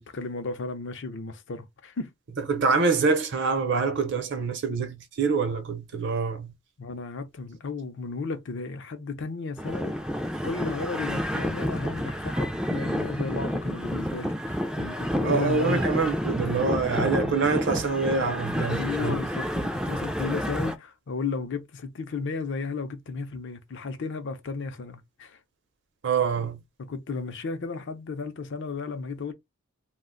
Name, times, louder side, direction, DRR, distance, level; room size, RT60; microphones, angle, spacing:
voice 1, 0.0-2.1 6.8-10.0 10.4-15.8 18.7-25.4 26.4-26.5 26.8-29.3, left 4 dB, 60° left, 0.5 m, -34 dB
voice 2, 2.4-6.5 15.2-19.2 26.0-26.6, right 4 dB, 55° right, 0.6 m, -25 dB
sound 1, 9.6-20.8, equal, 5° right, 0.3 m, -30 dB
2.4 x 2.1 x 3.7 m
head